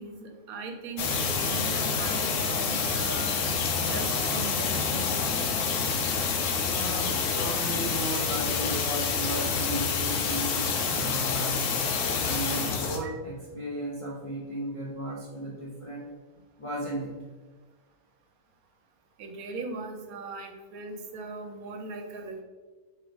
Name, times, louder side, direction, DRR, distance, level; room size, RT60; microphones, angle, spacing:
voice 1, 0.0-3.4 3.8-5.1 13.0-13.1 19.2-22.4, right 3 dB, 85° right, 4 dB, 1.1 m, -39 dB
sound 1, 1.0-13.0, left 5 dB, 70° left, 0.9 m, -28 dB
voice 2, 6.6-11.8 12.2-16.1 16.6-17.1, right 1 dB, 55° left, -5 dB, 0.3 m, -35 dB
3.4 x 3.0 x 3.9 m, 1.4 s
omnidirectional pair, 1.5 m